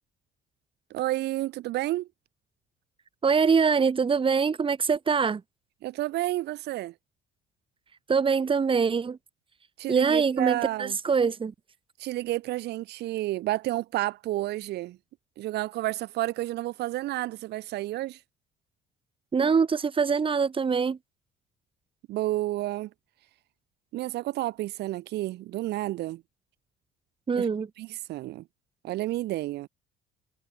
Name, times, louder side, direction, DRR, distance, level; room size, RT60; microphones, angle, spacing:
voice 1, 0.9-2.1 5.8-6.9 9.8-11.0 12.0-15.0 15.4-18.2 22.1-22.9 23.9-26.2 27.3-27.5 27.8-28.4 28.8-29.7, right 16 dB, 80° right, 6.5 m, -30 dB
voice 2, 3.2-5.4 8.1-9.2 9.9-11.5 19.3-21.0 27.3-27.7, right 5 dB, 30° right, 4.4 m, -24 dB
cardioid pair, 110°, 17 cm